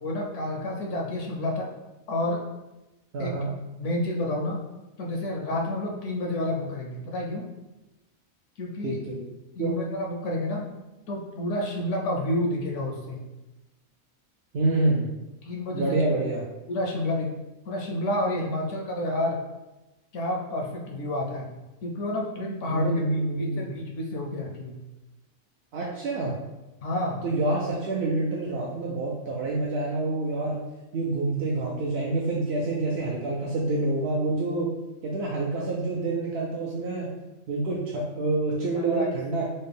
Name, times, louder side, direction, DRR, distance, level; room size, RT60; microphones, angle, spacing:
voice 1, 0.0-1.7 2.1-2.4 3.2-3.5 3.8-4.6 5.0-7.5 8.6-9.0 9.5-10.6 11.1-13.2 15.4-16.0 16.7-17.3 17.7-19.4 20.1-23.0 23.4-24.8 26.8-27.3 38.7-39.1, left 1 dB, 70° left, 0 dB, 0.9 m, -29 dB
voice 2, 3.1-3.5 8.8-9.2 9.6-9.7 14.5-15.1 15.7-16.4 22.7-23.7 25.7-26.4 27.2-30.6 30.9-34.7 35.0-37.1 37.5-39.4, right 2 dB, 65° right, -3 dB, 0.6 m, -27 dB
4.2 x 2.1 x 3.4 m, 1.0 s
omnidirectional pair, 1.5 m